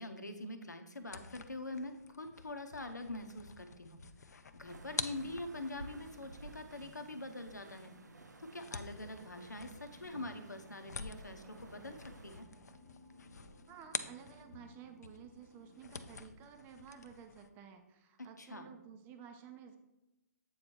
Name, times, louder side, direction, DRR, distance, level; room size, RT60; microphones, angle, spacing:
voice 1, 0.0-4.0 4.5-7.9 8.4-12.5 18.2-18.7, left 2 dB, 90° left, 7 dB, 0.8 m, -44 dB
sound 1, 1.0-14.7 15.0-17.5, left 5 dB, 70° left, 0.5 m, -48 dB
sound 2, 3.6-16.2, equal, 65° right, 1.4 m, -64 dB
sound 3, 4.7-12.4, right 3 dB, 80° right, 0.6 m, -54 dB
voice 2, 13.7-19.8, right 7 dB, 20° right, 6 dB, 0.6 m, -53 dB
8.2 x 3.2 x 4.4 m, 0.97 s
figure-of-eight pair, 130°, 9 cm